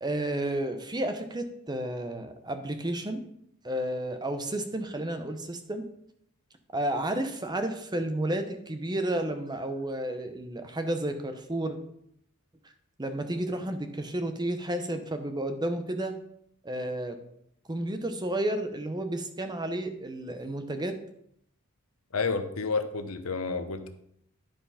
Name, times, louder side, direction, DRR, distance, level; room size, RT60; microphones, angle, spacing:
voice 1, 0.0-3.2 3.6-5.9 6.7-11.8 13.0-16.1 16.6-17.2 17.7-20.9, right 1 dB, 20° right, 7 dB, 0.8 m, -31 dB
voice 2, 22.1-23.9, left 4 dB, 80° left, 8 dB, 0.9 m, -30 dB
10.5 x 4.6 x 5.6 m, 0.73 s
head